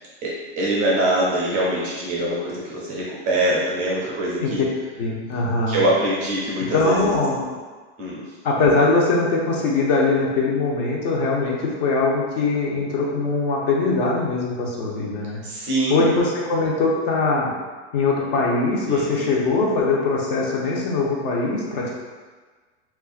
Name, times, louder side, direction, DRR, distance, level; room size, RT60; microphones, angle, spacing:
voice 1, 0.2-4.6 5.7-7.0 8.0-8.2 15.4-16.1 18.9-19.3, right 1 dB, 25° right, -5 dB, 0.5 m, -23 dB
voice 2, 5.0-5.8 6.6-7.5 8.4-15.4 15.9-17.5 17.9-21.9, left 3 dB, 50° left, -2 dB, 0.8 m, -21 dB
4.3 x 2.4 x 2.4 m, 1.4 s
supercardioid pair, 160°, 34 cm